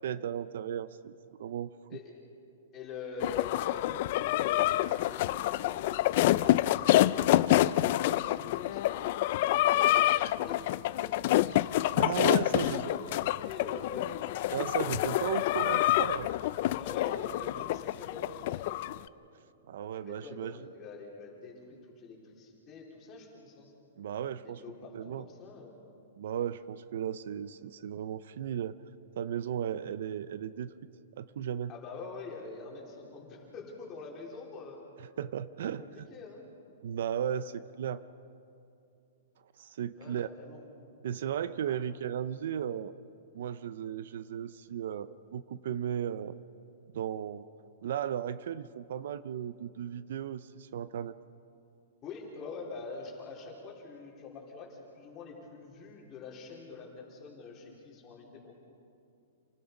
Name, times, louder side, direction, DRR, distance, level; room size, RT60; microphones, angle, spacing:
voice 1, 0.0-2.0 12.0-12.9 14.5-16.3 19.7-20.6 24.0-24.6 24.9-25.2 26.2-28.7 29.2-30.7 31.2-31.7 35.0-36.1 36.8-38.0 39.6-40.3 41.0-42.9 43.3-46.4 46.9-47.5 47.8-51.1, right 9 dB, 60° right, 15 dB, 0.6 m, -35 dB
voice 2, 2.7-11.5 12.3-14.1 16.7-18.9 20.0-23.7 24.4-25.8 31.7-34.8 35.8-36.4 40.0-40.6 41.7-41.8 52.0-58.5, left 4 dB, 20° left, -2 dB, 3.8 m, -45 dB
sound 1, 3.2-19.0, left 15 dB, 40° left, 0.4 m, -27 dB
28.0 x 19.0 x 5.3 m, 2.6 s
hypercardioid pair, 165°, 0 cm